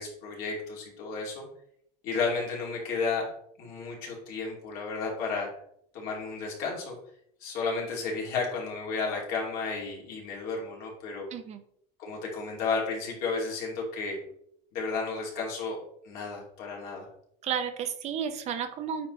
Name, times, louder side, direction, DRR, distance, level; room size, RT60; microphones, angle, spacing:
voice 1, 0.0-1.4 2.0-3.3 3.6-5.5 5.9-6.9 7.4-11.3 12.0-14.2 14.7-15.8 16.0-17.1, left 4 dB, 60° left, -2 dB, 2.5 m, -32 dB
voice 2, 11.3-11.6 17.4-19.1, right 7 dB, 40° right, 8 dB, 0.7 m, -32 dB
8.7 x 4.1 x 3.1 m, 0.69 s
cardioid pair, 140°, 17 cm